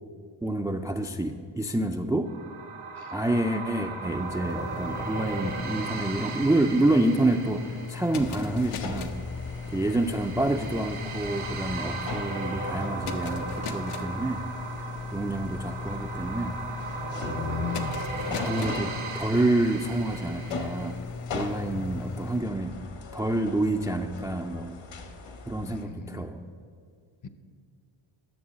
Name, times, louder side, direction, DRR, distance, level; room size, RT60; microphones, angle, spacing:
voice 1, 0.4-2.3 3.1-9.1 9.7-14.4 15.1-16.5 17.2-17.7 18.3-21.0 21.3-22.7 23.1-24.8 25.5-26.5, right 2 dB, 5° right, 5 dB, 0.3 m, -28 dB
sound 1, 2.3-20.9, right 3 dB, 90° right, 2.2 m, -37 dB
sound 2, 3.9-22.4, left 4 dB, 85° left, 1.0 m, -38 dB
sound 3, 8.1-25.8, left 4 dB, 60° left, 1.3 m, -41 dB
voice 2, 17.2-18.0 21.7-21.8 25.6-26.2 27.2-27.3, left 5 dB, 40° left, 11 dB, 0.7 m, -35 dB
11.5 x 6.8 x 6.7 m, 2.1 s
cardioid pair, 110°, 49 cm